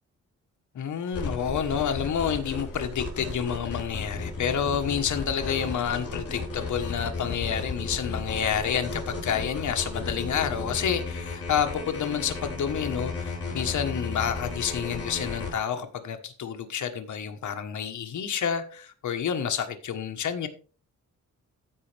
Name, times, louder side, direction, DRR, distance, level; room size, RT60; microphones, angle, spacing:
voice 1, 0.7-20.5, left 8 dB, 70° left, 1.3 m, -29 dB
sound 1, 1.1-15.5, left 3 dB, 50° left, 4.0 m, -34 dB
15.0 x 5.3 x 3.4 m
wide cardioid pair, 135°, 30 cm